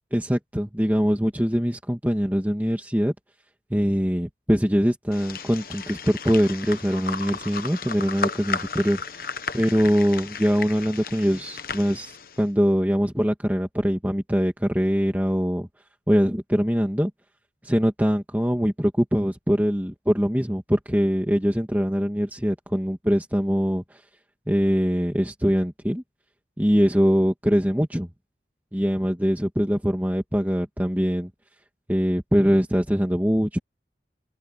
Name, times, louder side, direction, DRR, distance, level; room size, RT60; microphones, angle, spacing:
voice 1, 0.1-3.1 3.7-9.2 9.5-15.7 16.1-17.1 17.6-24.0 24.5-26.0 26.6-28.1 28.7-31.3 31.9-33.6, equal, 10° right, 2.1 m, -23 dB
sound 1, 5.1-12.4, left 5 dB, 55° left, 1.1 m, -34 dB
open air
head